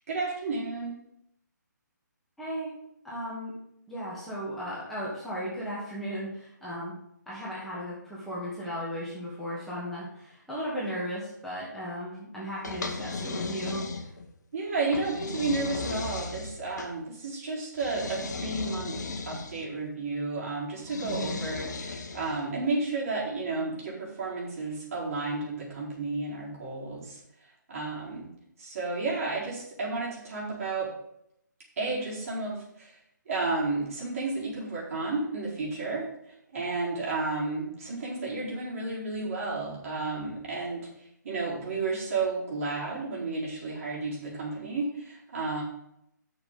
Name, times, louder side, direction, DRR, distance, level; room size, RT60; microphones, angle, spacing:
voice 1, 0.1-0.9 14.5-19.0 19.2-27.2 27.7-28.3 28.6-30.9 31.8-33.0 33.3-45.6, right 3 dB, 50° right, -5 dB, 4.3 m, -32 dB
voice 2, 2.4-2.7 3.0-3.5 3.9-7.0 7.3-14.1 21.0-21.4, equal, ahead, -9 dB, 2.1 m, -36 dB
sound 1, 12.6-14.3 14.9-16.9 17.8-19.6 20.8-22.4, left 4 dB, 60° left, 1.4 m, -36 dB
8.3 x 6.5 x 5.2 m, 0.77 s
figure-of-eight pair, 145°, 10 cm